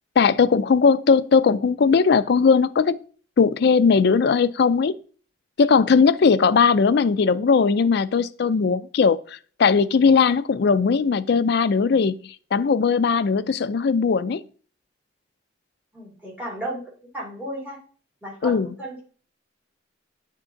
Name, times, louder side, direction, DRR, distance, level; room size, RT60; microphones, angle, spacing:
voice 1, 0.2-3.0 3.4-5.0 5.6-14.4 18.4-18.7, left 5 dB, 60° left, 0.4 m, -19 dB
voice 2, 15.9-16.8 17.1-17.8 18.2-19.0, right 1 dB, 10° right, 2.6 m, -33 dB
9.8 x 3.7 x 3.8 m
head